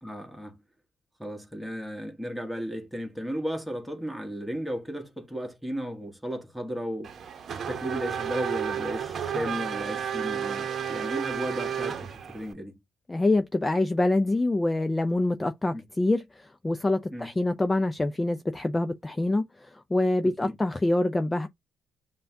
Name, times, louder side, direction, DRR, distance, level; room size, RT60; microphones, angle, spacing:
voice 1, 0.0-0.6 1.2-7.1 7.7-12.8 15.7-15.8 17.1-17.3 20.2-20.6, equal, 5° right, 1.4 m, -35 dB
Race car auto racing / Accelerating revving vroom, 7.0-12.5, right 8 dB, 55° right, 0.8 m, -32 dB
voice 2, 13.1-21.5, left 2 dB, 20° left, 0.4 m, -26 dB
5.5 x 2.3 x 2.7 m
cardioid pair, 90°, 0 cm